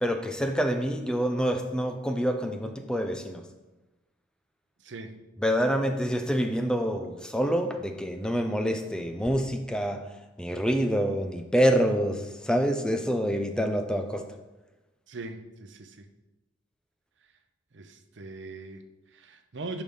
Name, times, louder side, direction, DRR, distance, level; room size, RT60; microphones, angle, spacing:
voice 1, 0.0-3.5 5.4-10.1 10.4-14.3, equal, 5° left, 0.5 m, -27 dB
voice 2, 4.8-5.2 15.1-16.1 17.7-19.8, right 3 dB, 65° right, 0.6 m, -41 dB
5.7 x 5.0 x 5.4 m
head